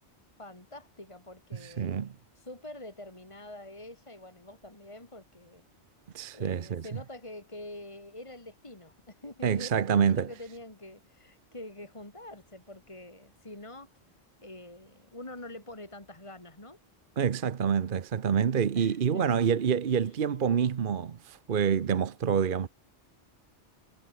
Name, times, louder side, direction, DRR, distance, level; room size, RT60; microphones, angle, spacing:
voice 1, 0.4-1.9 2.3-5.6 6.3-14.0 14.4-16.8 18.7-19.4 20.0-20.1, left 1 dB, 25° left, 3.0 m, -46 dB
voice 2, 1.6-2.1 6.1-6.9 9.4-10.3 17.2-22.7, right 7 dB, 55° right, 1.0 m, -27 dB
omnidirectional pair, 1.1 m